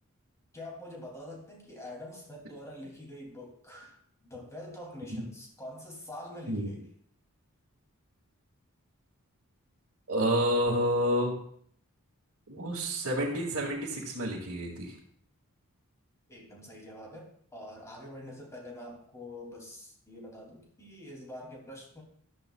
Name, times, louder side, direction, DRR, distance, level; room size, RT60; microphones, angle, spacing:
voice 1, 0.5-4.0 4.3-6.9 16.3-22.0, left 1 dB, 15° left, -1 dB, 2.7 m, -45 dB
voice 2, 10.1-11.3 12.5-14.9, equal, 75° right, -6 dB, 2.1 m, -29 dB
13.5 x 12.0 x 2.3 m, 0.62 s
head